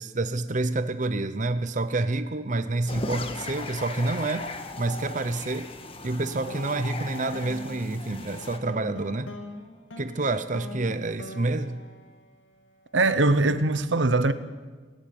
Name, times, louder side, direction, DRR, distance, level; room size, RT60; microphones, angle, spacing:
voice 1, 0.0-4.5 4.8-5.7 6.0-9.3 10.0-11.8, right 2 dB, 40° right, 0.8 m, -28 dB
sound 1, 2.9-8.6, left 2 dB, 30° left, 1.5 m, -37 dB
sound 2, 6.5-12.9, left 1 dB, 85° left, 2.6 m, -43 dB
voice 2, 12.9-14.3, right 2 dB, 85° right, 1.0 m, -21 dB
17.5 x 16.0 x 9.3 m
head